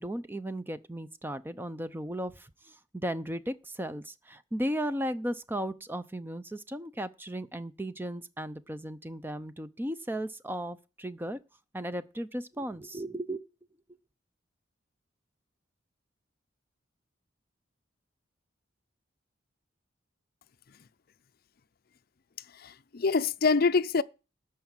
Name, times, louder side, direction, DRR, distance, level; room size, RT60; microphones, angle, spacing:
voice 1, 0.0-11.4 11.7-13.4, equal, 10° right, 0.6 m, -36 dB
voice 2, 22.5-24.0, left 4 dB, 55° left, 0.5 m, -25 dB
13.0 x 4.8 x 8.9 m
head